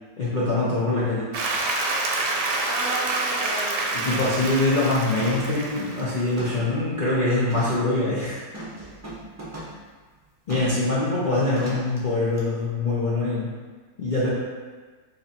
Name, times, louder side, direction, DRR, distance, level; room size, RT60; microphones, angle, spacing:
voice 1, 0.2-1.3 3.9-8.4 10.5-13.5 14.0-14.3, left 2 dB, 55° left, -10 dB, 0.5 m, -24 dB
Applause, 1.3-6.4, right 2 dB, 85° right, 1.2 m, -27 dB
voice 2, 2.6-4.4 10.8-11.0, right 2 dB, 60° right, -4 dB, 0.7 m, -34 dB
sound 1, 3.0-3.2 3.6-3.9 4.2-4.6 5.2-6.8 7.5-7.8 8.5-9.8 10.5-10.9 11.5-12.0 12.4-12.5, right 1 dB, 20° right, 0.4 m, -38 dB
3.1 x 2.8 x 4.0 m, 1.4 s
omnidirectional pair, 1.8 m